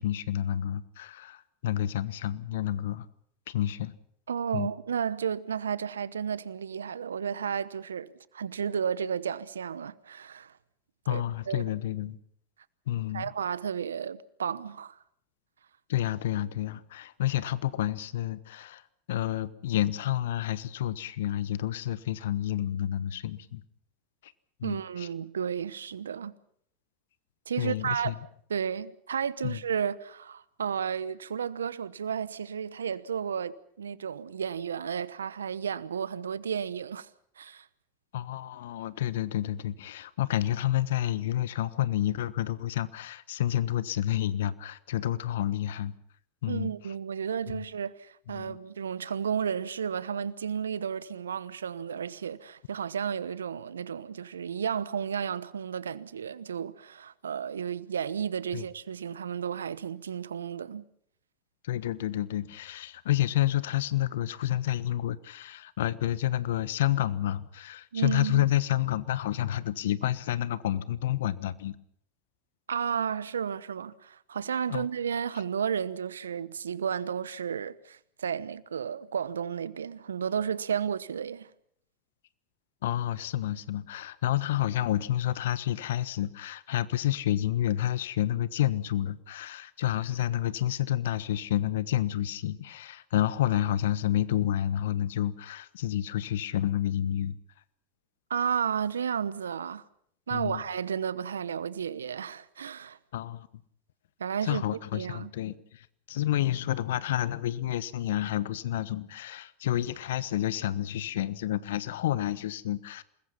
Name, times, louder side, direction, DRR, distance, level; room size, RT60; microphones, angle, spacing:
voice 1, 0.0-3.1 3.5-3.9 4.5-4.7 11.1-12.2 12.9-13.3 15.9-18.8 19.1-23.6 24.2-24.3 24.6-25.1 27.6-28.1 29.4-29.6 38.1-45.9 46.4-46.7 47.5-47.7 48.3-48.6 58.5-58.7 61.6-71.7 74.7-74.9 82.8-97.4 100.3-100.6 103.1-103.5 104.5-113.0, left 12 dB, 75° left, 1.2 m, -29 dB
voice 2, 4.3-10.5 11.1-11.6 13.1-15.0 24.6-26.3 27.5-28.2 28.5-37.1 37.4-37.7 46.5-60.9 67.9-68.5 72.7-81.5 98.3-99.8 100.3-103.0 104.2-104.6 104.9-105.3, right 7 dB, 85° right, 1.0 m, -32 dB
28.0 x 21.0 x 5.8 m
hypercardioid pair, 85°, 0 cm